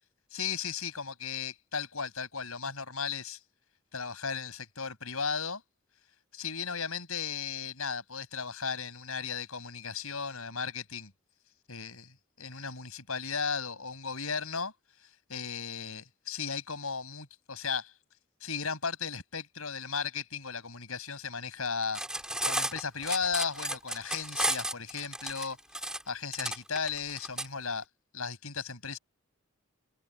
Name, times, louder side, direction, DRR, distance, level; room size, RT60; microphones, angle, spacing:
voice 1, 0.3-3.4 3.9-5.6 6.3-11.1 11.7-14.7 15.3-17.9 18.4-22.0 22.4-25.6 26.1-27.8 28.1-29.0, left 5 dB, 70° left, 7.4 m, -35 dB
Cutlery silverware, 21.8-27.5, right 1 dB, 5° right, 5.4 m, -33 dB
head